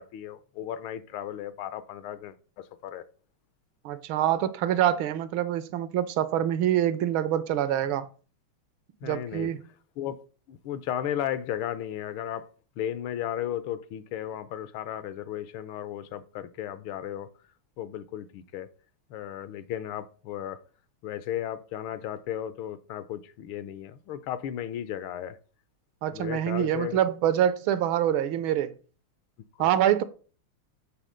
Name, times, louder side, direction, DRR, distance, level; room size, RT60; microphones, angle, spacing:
voice 1, 0.0-3.0 9.0-9.5 10.0-10.2 10.5-12.5 12.8-17.3 17.8-18.7 19.1-20.6 21.0-25.4 26.1-27.0 29.5-29.7, left 11 dB, 80° left, 1.5 m, -35 dB
voice 2, 3.8-8.1 9.0-9.6 26.0-28.8 29.6-30.0, right 11 dB, 75° right, 1.4 m, -25 dB
7.9 x 3.7 x 6.3 m
omnidirectional pair, 2.3 m